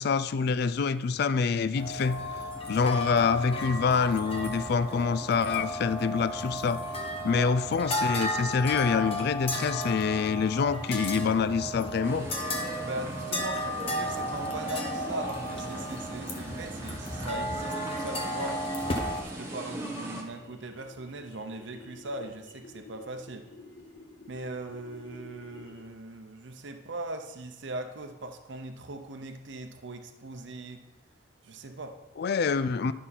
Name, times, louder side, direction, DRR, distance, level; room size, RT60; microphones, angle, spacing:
voice 1, 0.0-2.2 2.7-6.8 7.2-12.3 32.2-32.9, left 5 dB, 55° left, 14 dB, 0.3 m, -26 dB
sound 1, 1.7-19.2, left 1 dB, 30° left, 1.0 m, -34 dB
voice 2, 7.2-7.6 12.8-18.6 19.4-23.5 24.3-30.8 31.4-32.0, right 2 dB, 65° right, 6 dB, 0.7 m, -39 dB
sound 2, 12.0-20.2, right 1 dB, 15° right, 1.2 m, -39 dB
sound 3, 18.7-26.0, left 3 dB, 75° left, 1.3 m, -52 dB
11.0 x 5.7 x 4.2 m, 1.0 s
head